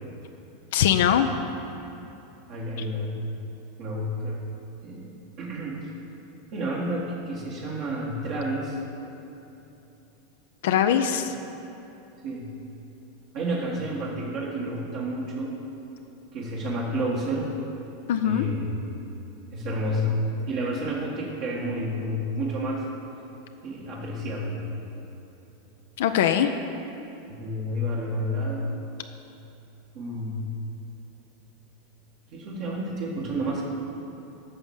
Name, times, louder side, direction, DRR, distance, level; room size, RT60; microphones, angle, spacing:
voice 1, 0.7-1.3 10.6-11.3 18.1-18.5 26.0-26.5, left 10 dB, 70° left, 7 dB, 0.4 m, -21 dB
voice 2, 2.5-3.2 3.8-4.5 4.8-5.9 6.5-8.8 12.2-12.5 13.3-15.5 16.3-17.5 18.2-18.7 19.5-20.2 20.5-22.9 23.6-24.6 27.3-28.7 29.9-30.4 32.3-33.6, equal, 55° right, -4 dB, 1.6 m, -30 dB
8.8 x 6.1 x 7.3 m, 2.9 s
hypercardioid pair, 90°, 0 cm